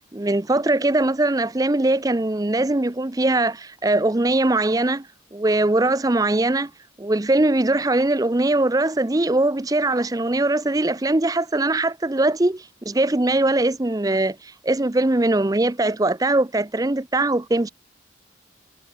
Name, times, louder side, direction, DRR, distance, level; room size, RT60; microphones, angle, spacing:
voice 1, 0.1-5.1 5.3-6.7 7.0-17.7, right 2 dB, 20° right, 0.6 m, -21 dB
head